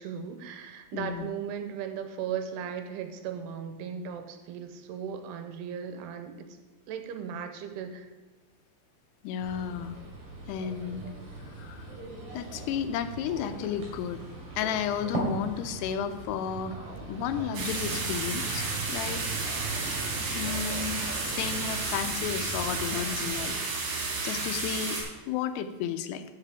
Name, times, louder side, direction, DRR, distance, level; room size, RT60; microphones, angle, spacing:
voice 1, 0.0-6.5 6.9-8.1, right 7 dB, 85° right, 7 dB, 2.7 m, -37 dB
voice 2, 0.9-1.3 9.2-10.0 10.5-11.1 11.5-11.9 12.3-14.2 14.6-16.8 17.1-19.2 20.3-23.6 24.2-25.0 25.3-26.2, left 8 dB, 85° left, 10 dB, 2.7 m, -33 dB
sound 1, 9.4-23.5, right 2 dB, 45° right, 3.9 m, -39 dB
sound 2, 17.5-25.0, right 3 dB, 65° right, 3.6 m, -32 dB
14.0 x 5.7 x 3.5 m, 1.2 s
omnidirectional pair, 4.7 m